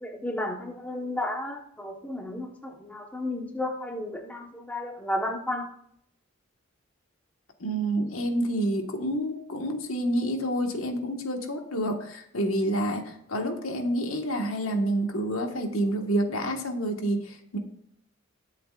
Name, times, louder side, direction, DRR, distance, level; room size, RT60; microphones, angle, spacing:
voice 1, 0.0-5.6, left 1 dB, 5° left, 0 dB, 1.3 m, -33 dB
voice 2, 7.6-17.6, right 1 dB, 75° left, 3 dB, 1.7 m, -28 dB
20.5 x 7.6 x 2.5 m, 0.70 s
head